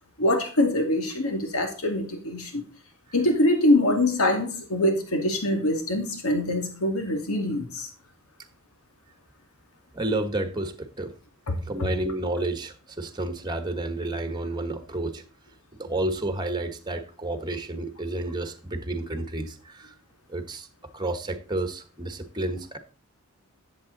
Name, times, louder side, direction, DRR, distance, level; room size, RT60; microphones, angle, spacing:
voice 1, 0.2-2.7 3.1-7.9 11.5-11.9, left 1 dB, 85° left, 4 dB, 2.3 m, -24 dB
voice 2, 9.9-11.1 11.6-15.2 15.7-19.9 20.3-20.7 20.9-22.8, right 2 dB, 20° right, 9 dB, 1.2 m, -30 dB
11.0 x 7.5 x 4.0 m, 0.36 s
head